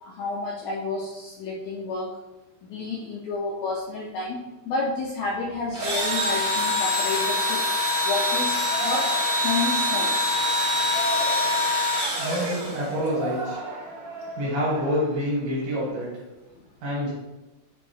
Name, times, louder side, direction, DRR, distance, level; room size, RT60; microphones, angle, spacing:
voice 1, 0.0-2.1 2.6-7.7 8.0-9.1 9.4-10.1 16.5-16.7, left 3 dB, 90° left, -3 dB, 1.7 m, -30 dB
Engine / Drill, 5.7-13.1, left 1 dB, 45° right, 1.6 m, -24 dB
Yell, 8.2-15.9, right 2 dB, 70° right, 1.8 m, -38 dB
voice 2, 12.2-13.6 14.4-16.1 16.8-17.1, equal, 85° right, -6 dB, 3.5 m, -27 dB
6.3 x 2.6 x 3.1 m, 1.1 s
omnidirectional pair, 4.1 m